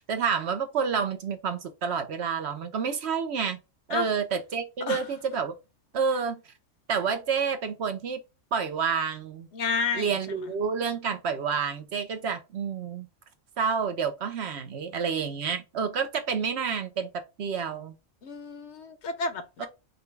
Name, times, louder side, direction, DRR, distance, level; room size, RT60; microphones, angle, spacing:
voice 1, 0.0-3.6 3.9-5.5 5.9-6.4 6.9-8.2 8.5-9.5 9.9-13.1 13.6-17.1 17.4-17.9 19.6-19.7, right 6 dB, 60° right, 0.9 m, -29 dB
voice 2, 9.5-10.1 18.2-19.7, left 4 dB, 65° left, 1.0 m, -30 dB
5.3 x 2.3 x 3.2 m
omnidirectional pair, 1.3 m